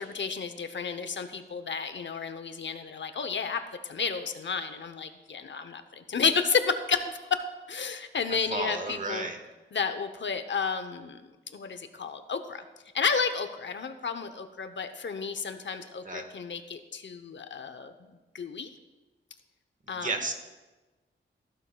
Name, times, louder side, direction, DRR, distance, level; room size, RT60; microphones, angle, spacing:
voice 1, 0.0-9.3 9.7-12.6 12.9-18.7 19.9-20.2, left 5 dB, 65° left, 9 dB, 0.8 m, -32 dB
voice 2, 8.5-9.4 16.0-16.2 20.0-20.3, right 2 dB, 40° right, 5 dB, 1.4 m, -32 dB
14.5 x 11.5 x 2.3 m, 1.2 s
cardioid pair, 70°, 20 cm